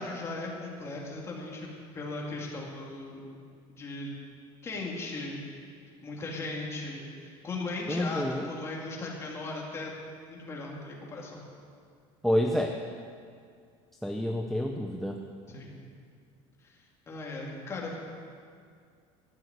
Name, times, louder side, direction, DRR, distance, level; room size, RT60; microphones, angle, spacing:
voice 1, 0.0-3.2 3.8-4.1 4.6-5.4 6.0-9.9 10.3-11.4 15.5-15.8 16.6-16.8 17.1-18.0, left 2 dB, 25° left, -2 dB, 2.5 m, -37 dB
voice 2, 7.9-8.5 12.2-12.7 14.0-15.2, left 1 dB, ahead, 3 dB, 0.6 m, -28 dB
13.5 x 8.6 x 8.1 m, 2.2 s
cardioid pair, 160°, 12 cm